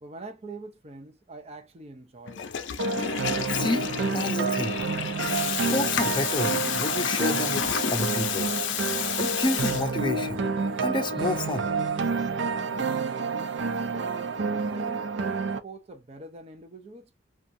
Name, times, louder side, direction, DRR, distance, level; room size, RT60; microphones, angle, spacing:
voice 1, 0.0-2.5 13.7-17.2, right 2 dB, 35° right, 0.5 m, -44 dB
Water tap faucet / Toilet flush, 2.2-10.3, left 9 dB, 80° left, 0.4 m, -30 dB
sound 1, 2.8-15.6, right 4 dB, 85° right, 0.5 m, -29 dB
voice 2, 3.5-4.8 5.7-8.5 9.2-10.5 10.8-11.7, left 2 dB, 25° left, 0.5 m, -30 dB
2.7 x 2.3 x 2.5 m
head